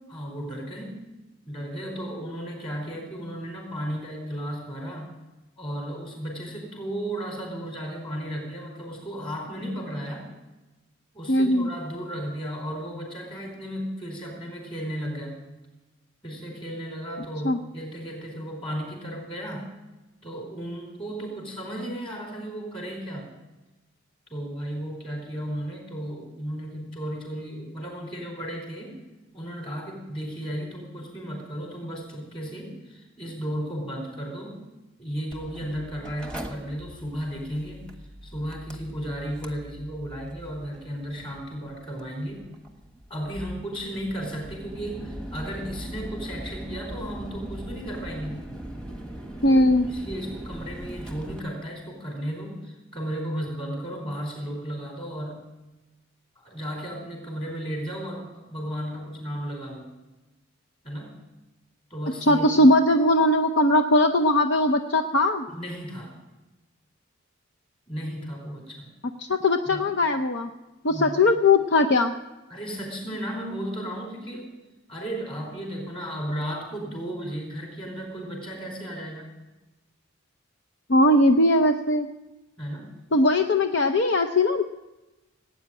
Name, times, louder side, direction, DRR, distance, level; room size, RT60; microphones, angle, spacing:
voice 1, 0.1-1.0 1.5-5.1 5.6-10.3 11.1-15.4 16.2-19.7 20.2-23.3 24.3-29.0 29.3-34.6 35.0-37.9 38.2-42.5 43.1-48.5 49.5-55.5 56.4-59.9 60.8-61.2 61.9-62.5 65.5-66.1 67.9-68.9 69.7-69.9 70.9-71.2 72.5-74.5 74.9-79.3 82.6-82.9, equal, 25° left, 1 dB, 4.4 m, -34 dB
voice 2, 11.3-11.7 17.4-17.6 49.4-49.9 62.2-65.5 69.2-70.5 70.8-72.1 80.9-82.1 83.1-84.6, left 1 dB, 55° left, 6 dB, 0.7 m, -20 dB
Mechanical fan, 35.3-51.4, right 1 dB, 5° left, 1.3 m, -40 dB
17.5 x 9.1 x 8.8 m, 1.1 s
head